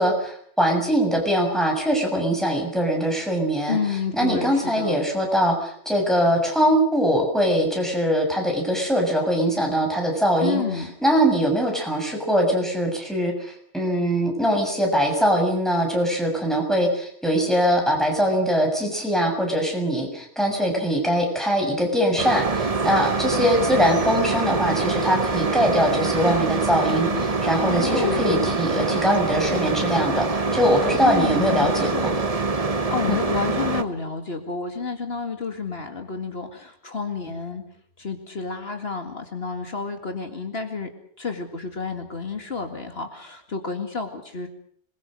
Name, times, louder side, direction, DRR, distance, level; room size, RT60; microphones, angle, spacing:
voice 1, 0.0-3.8 4.1-10.6 11.0-32.1 33.1-33.2, equal, ahead, 1 dB, 7.0 m, -22 dB
voice 2, 3.7-5.0 10.4-10.9 27.6-28.9 31.0-32.3 32.9-37.6 38.0-40.9 41.2-44.5, left 4 dB, 60° left, 5 dB, 2.3 m, -30 dB
sound 1, 22.2-33.8, right 3 dB, 35° right, 1.3 m, -25 dB
26.5 x 22.0 x 6.5 m, 0.63 s
omnidirectional pair, 1.2 m